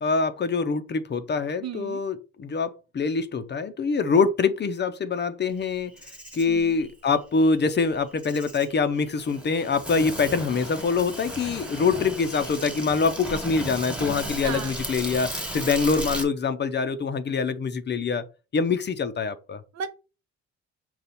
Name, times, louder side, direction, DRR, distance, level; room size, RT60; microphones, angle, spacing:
voice 1, 0.0-5.9 6.3-18.2 18.5-19.6, left 4 dB, 35° left, 0.6 m, -25 dB
voice 2, 1.6-2.0 6.5-6.8 14.4-14.7 19.7-19.9, right 6 dB, 60° right, 0.7 m, -34 dB
Insect, 5.6-16.2, right 1 dB, 5° right, 1.4 m, -35 dB
5.3 x 2.3 x 4.2 m
cardioid pair, 90°, 30 cm